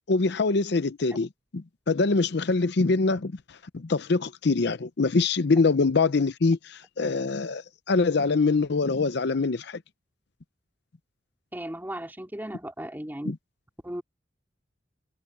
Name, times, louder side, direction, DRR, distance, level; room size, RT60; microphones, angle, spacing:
voice 1, 0.1-9.8 13.3-13.4, left 3 dB, 60° left, 0.6 m, -24 dB
voice 2, 11.5-13.3 13.8-14.0, right 1 dB, 10° right, 2.8 m, -36 dB
head